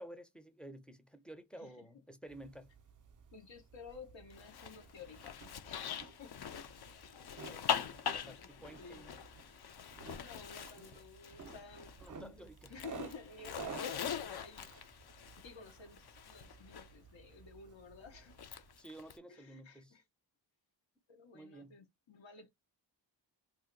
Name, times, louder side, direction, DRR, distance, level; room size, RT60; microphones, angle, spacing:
voice 1, 0.0-2.7 7.4-9.1 12.0-12.7 18.8-20.0 21.3-21.8, right 1 dB, ahead, 0.5 m, -52 dB
voice 2, 1.5-1.9 3.3-6.4 6.9-7.3 8.4-9.1 10.0-15.0 15.4-18.4 19.3-20.0 21.1-22.5, left 5 dB, 90° left, 0.8 m, -54 dB
sound 1, 2.3-18.8, right 6 dB, 45° right, 0.5 m, -54 dB
Zipper (clothing), 4.3-12.2 12.5-16.9 18.3-19.2, left 8 dB, 60° left, 0.5 m, -42 dB
2.6 x 2.1 x 3.7 m
wide cardioid pair, 85°, 44 cm